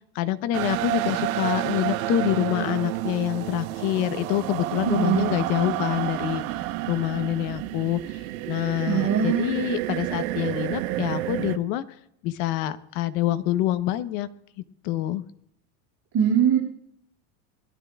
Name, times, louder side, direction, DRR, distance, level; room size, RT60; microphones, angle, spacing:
voice 1, 0.1-6.4 6.9-8.0 8.5-11.8 12.2-14.3 14.8-15.2, left 14 dB, 60° left, 12 dB, 1.0 m, -26 dB
sound 1, 0.5-11.6, right 15 dB, 80° right, 1.1 m, -30 dB
voice 2, 4.8-5.3 8.9-9.7 16.1-16.6, right 8 dB, 40° right, -4 dB, 6.4 m, -22 dB
21.5 x 12.5 x 2.4 m, 0.74 s
supercardioid pair, 125°, 41 cm